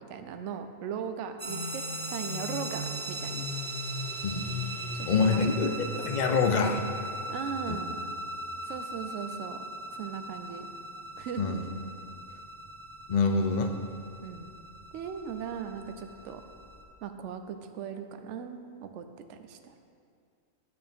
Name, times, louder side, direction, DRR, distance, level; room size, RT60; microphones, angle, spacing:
voice 1, 0.0-1.8 2.1-3.5 4.9-5.6 7.3-8.0 8.6-9.6 9.9-10.7 11.2-11.6 14.2-14.5 14.9-16.4 17.0-19.8, right 7 dB, 70° right, 7 dB, 0.9 m, -38 dB
sound 1, 1.4-16.8, right 2 dB, 25° right, 0.9 m, -40 dB
sound 2, 1.5-8.7, left 3 dB, 85° left, 2.5 m, -40 dB
voice 2, 5.0-5.7 6.0-6.8 7.7-7.8 11.4-11.6 13.1-13.7, left 4 dB, 45° left, 5 dB, 0.6 m, -25 dB
10.5 x 8.5 x 3.6 m, 2.3 s
omnidirectional pair, 1.4 m